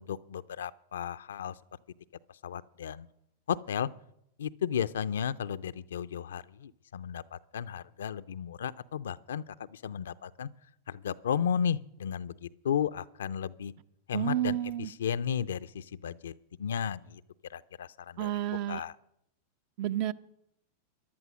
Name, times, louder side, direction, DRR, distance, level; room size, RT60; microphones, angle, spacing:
voice 1, 0.0-1.6 2.3-3.1 3.5-3.9 4.4-10.5 10.9-13.7 14.1-17.2 17.5-18.3 18.7-18.9, left 8 dB, 80° left, 14 dB, 0.5 m, -34 dB
voice 2, 14.1-14.9 18.2-18.8 19.8-20.1, right 13 dB, 55° right, 13 dB, 0.7 m, -30 dB
14.5 x 11.0 x 6.2 m, 0.79 s
hypercardioid pair, 100°, 0 cm